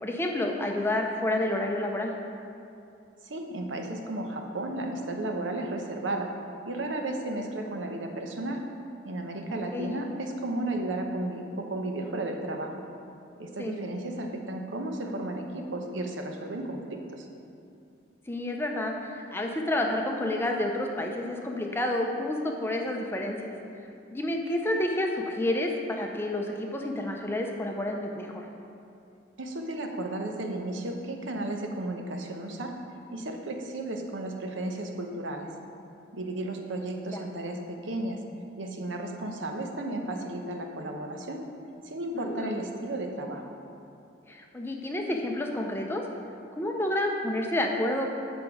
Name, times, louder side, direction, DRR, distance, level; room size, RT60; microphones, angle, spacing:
voice 1, 0.0-2.1 9.5-9.9 13.6-13.8 18.3-23.5 24.1-28.5 37.1-37.2 42.1-42.6 44.3-46.0 46.6-48.1, left 1 dB, 10° left, 1 dB, 0.5 m, -29 dB
voice 2, 3.2-6.3 6.6-8.6 9.0-12.7 13.4-17.3 29.4-32.7 33.1-35.5 36.1-38.2 38.6-41.4 41.8-43.6, right 1 dB, 85° right, 3 dB, 0.8 m, -34 dB
8.0 x 5.1 x 4.8 m, 2.6 s
head